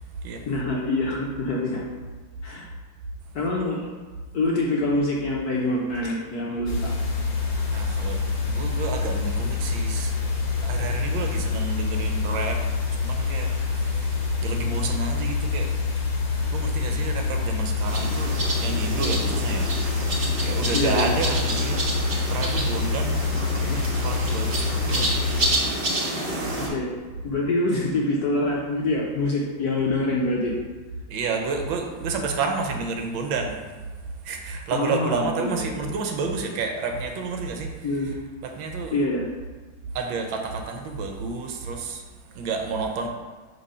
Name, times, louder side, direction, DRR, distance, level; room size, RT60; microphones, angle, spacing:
voice 1, 0.5-1.8 2.4-2.6 3.3-3.9 4.3-6.9 20.7-21.1 23.4-23.8 25.0-25.1 26.6-26.9 27.2-30.5 34.7-35.7 37.8-38.1 38.9-39.3, left 2 dB, 65° left, -2 dB, 1.0 m, -25 dB
sound 1, 6.7-25.5, left 4 dB, 50° left, 1.6 m, -26 dB
voice 2, 7.7-10.3 10.6-12.6 12.9-15.7 16.5-20.0 20.4-22.0 22.3-23.2 24.0-25.1 26.2-26.5 31.1-33.6 34.2-37.7 38.0-38.2 38.4-39.0 39.9-42.0 42.3-43.1, right 4 dB, 75° right, 3 dB, 1.4 m, -30 dB
sound 2, 17.9-26.7, right 1 dB, 45° right, 0.8 m, -29 dB
5.4 x 3.3 x 5.4 m, 1.4 s
omnidirectional pair, 2.3 m